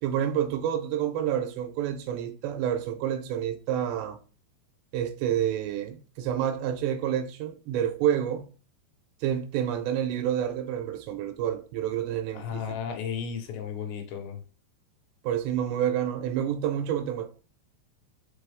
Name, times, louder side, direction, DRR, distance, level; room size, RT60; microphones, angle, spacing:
voice 1, 0.0-4.2 4.9-8.5 9.2-12.6 15.2-17.3, right 10 dB, 90° right, 2.9 m, -28 dB
voice 2, 12.3-14.4, left 7 dB, 80° left, 3.3 m, -34 dB
6.0 x 4.7 x 3.4 m
omnidirectional pair, 5.1 m